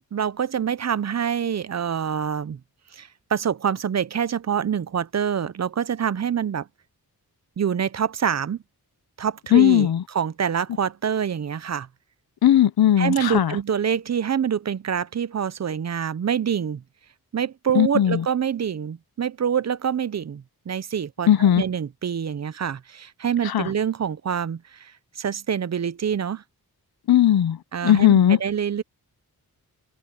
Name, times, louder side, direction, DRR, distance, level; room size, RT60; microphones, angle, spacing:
voice 1, 0.1-2.6 2.9-6.7 7.6-8.6 9.2-11.9 13.0-16.8 17.3-24.9 25.2-26.4 27.7-28.8, right 8 dB, 45° right, 0.6 m, -26 dB
voice 2, 9.5-10.0 12.4-13.5 17.8-18.2 21.3-21.6 23.4-23.7 27.1-27.6 27.8-28.4, left 11 dB, 80° left, 0.7 m, -17 dB
open air
wide cardioid pair, 140°, 37 cm